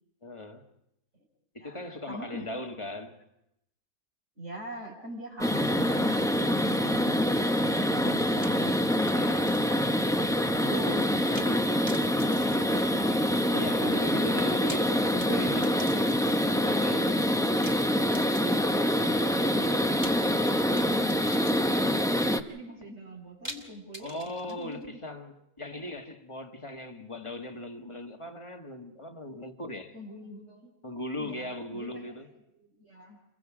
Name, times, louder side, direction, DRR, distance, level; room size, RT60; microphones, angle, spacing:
voice 1, 0.2-0.7 1.5-3.2 9.1-9.7 10.5-11.2 11.5-11.7 13.5-17.2 24.0-29.9 30.8-32.3, left 1 dB, 20° left, 1.4 m, -39 dB
voice 2, 1.6-2.5 4.4-8.7 11.0-11.7 12.0-13.0 18.4-19.1 20.0-24.2 24.5-25.0 25.7-25.9 29.9-30.7 31.2-32.2 32.5-33.2, right 1 dB, 50° right, 5.8 m, -44 dB
sound 1, 5.4-22.4, equal, 5° left, 0.5 m, -25 dB
sound 2, 8.4-9.9 10.2-10.3 11.3-11.6 11.9-13.4 14.4-16.6 17.6-18.8 20.0-21.9 23.4-24.8, right 1 dB, 15° right, 2.0 m, -46 dB
29.0 x 23.0 x 4.9 m
omnidirectional pair, 1.6 m